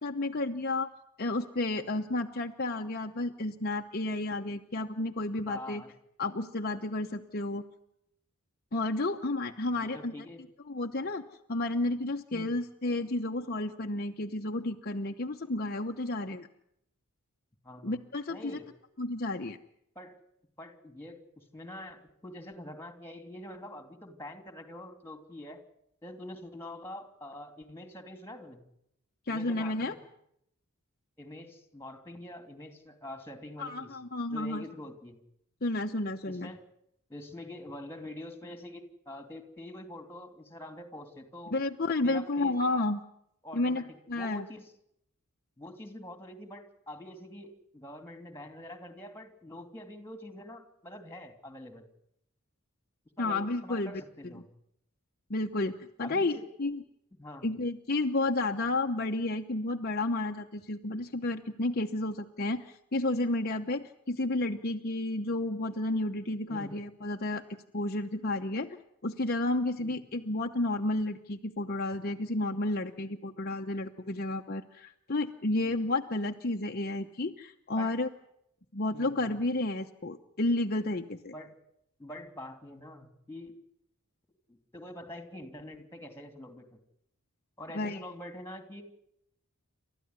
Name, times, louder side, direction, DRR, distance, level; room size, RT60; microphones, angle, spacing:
voice 1, 0.0-0.9 1.2-5.8 6.2-7.6 8.7-10.1 10.7-11.2 11.5-16.5 17.8-18.6 19.0-19.6 29.3-29.9 33.6-34.7 35.6-36.5 41.5-43.0 43.5-44.5 53.2-54.4 55.3-56.8 57.4-67.4 67.7-78.1 78.7-81.3 87.7-88.0, left 2 dB, 45° left, 3 dB, 0.9 m, -31 dB
voice 2, 5.5-5.9 9.7-10.4 12.3-12.5 17.6-18.0 18.3-18.7 19.9-20.2 20.6-25.6 26.0-28.6 29.3-30.0 31.2-34.0 34.3-35.2 36.3-36.6 37.1-41.5 42.0-42.8 43.4-43.8 44.1-44.7 45.6-51.9 53.2-54.4 56.0-56.5 57.2-57.5 66.5-66.8 69.8-70.0 75.6-75.7 77.8-78.0 78.9-79.2 81.3-81.6 82.0-83.5 84.5-86.8 87.6-88.8, left 1 dB, 10° left, 7 dB, 2.9 m, -45 dB
29.0 x 13.5 x 9.7 m, 0.77 s
head